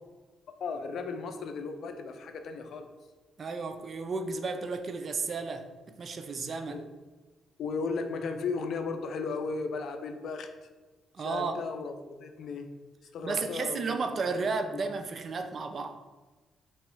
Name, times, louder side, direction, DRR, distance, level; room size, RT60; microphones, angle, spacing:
voice 1, 0.6-2.9 6.7-6.8 7.6-10.5 11.2-12.7 13.1-14.2 14.7-14.8, left 4 dB, 65° left, 7 dB, 0.5 m, -35 dB
voice 2, 3.4-6.8 11.1-11.6 13.2-16.0, right 4 dB, 45° right, 7 dB, 0.4 m, -33 dB
3.1 x 3.0 x 4.5 m, 1.2 s
cardioid pair, 90°, 0 cm